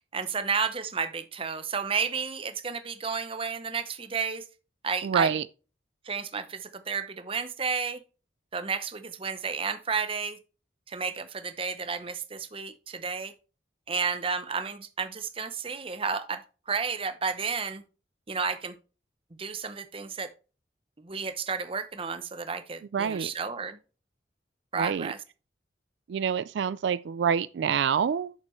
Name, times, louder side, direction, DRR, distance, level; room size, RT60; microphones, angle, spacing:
voice 1, 0.1-4.4 4.8-5.3 6.1-8.0 8.5-10.4 10.9-13.3 13.9-16.4 16.7-17.8 18.3-18.7 19.4-20.3 21.0-23.8 24.7-25.2, right 5 dB, 30° right, 0.8 m, -32 dB
voice 2, 5.0-5.5 22.9-23.3 24.8-25.1 26.1-28.3, right 7 dB, 75° right, 0.3 m, -26 dB
8.8 x 6.6 x 3.1 m
head